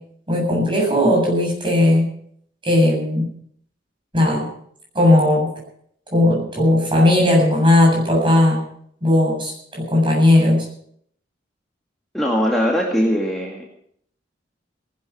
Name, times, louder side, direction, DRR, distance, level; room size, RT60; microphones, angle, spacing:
voice 1, 0.3-2.1 2.6-3.3 4.1-4.5 4.9-5.5 6.1-8.6 9.0-10.6, left 1 dB, 25° right, -2 dB, 7.7 m, -17 dB
voice 2, 12.1-13.6, equal, ahead, -3 dB, 2.2 m, -20 dB
19.0 x 12.0 x 6.0 m, 0.66 s
head